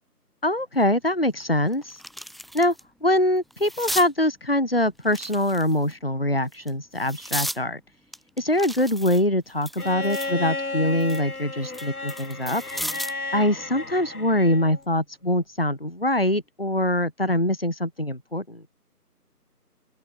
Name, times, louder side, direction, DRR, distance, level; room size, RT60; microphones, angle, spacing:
voice 1, 0.4-2.0 2.5-2.7 3.0-7.8 8.4-12.6 13.3-18.6, left 1 dB, 35° left, 1.0 m, -23 dB
sound 1, 0.8-0.9 1.4-2.8 3.2-4.1 5.0-5.9 6.5-7.6 8.1-10.4 10.8-13.2 14.6-14.8, equal, ahead, 0.6 m, -35 dB
Bowed string instrument, 9.8-14.8 16.3-16.4, left 2 dB, 65° left, 2.2 m, -33 dB
open air
figure-of-eight pair, 170°, 48 cm